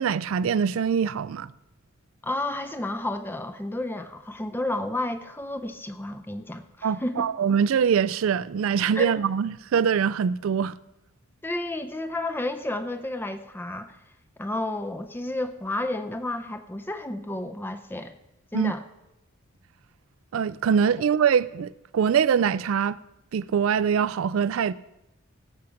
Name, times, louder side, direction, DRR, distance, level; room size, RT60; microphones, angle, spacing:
voice 1, 0.0-1.5 6.8-10.8 18.5-18.7 20.3-23.0 23.3-24.7, right 7 dB, 70° right, 0.4 m, -23 dB
voice 2, 2.2-7.3 9.0-9.1 11.4-14.0 14.4-18.1 18.5-18.8, left 1 dB, 10° left, 0.5 m, -31 dB
17.5 x 7.2 x 5.0 m
head